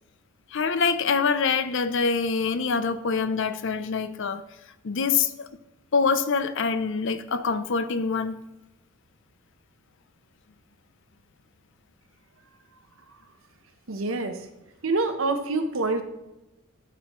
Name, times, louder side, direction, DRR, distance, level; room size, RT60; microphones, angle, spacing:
voice 1, 0.5-4.4 4.8-5.5 5.9-8.4, left 5 dB, 65° left, 12 dB, 0.6 m, -25 dB
voice 2, 13.9-14.4 14.8-16.0, right 3 dB, 70° right, 7 dB, 1.0 m, -26 dB
13.5 x 7.1 x 3.1 m, 0.96 s
head